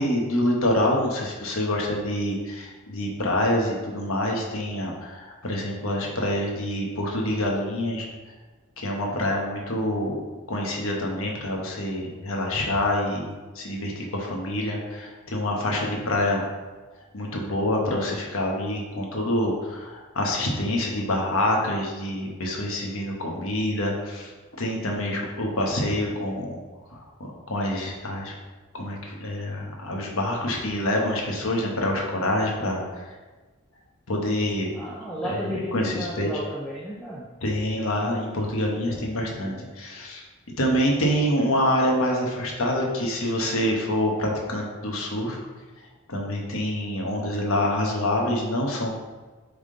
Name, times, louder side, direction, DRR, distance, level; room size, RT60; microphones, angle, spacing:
voice 1, 0.0-8.1 8.8-10.2 10.5-16.4 17.1-24.3 24.6-26.6 26.9-28.3 28.7-33.0 34.1-34.7 35.2-36.3 37.4-40.2 40.6-45.4 46.1-49.0, left 1 dB, 65° left, -1 dB, 1.1 m, -26 dB
voice 2, 34.7-37.3 38.8-39.7, equal, 5° left, -5 dB, 0.6 m, -34 dB
7.0 x 3.7 x 3.8 m, 1.3 s
head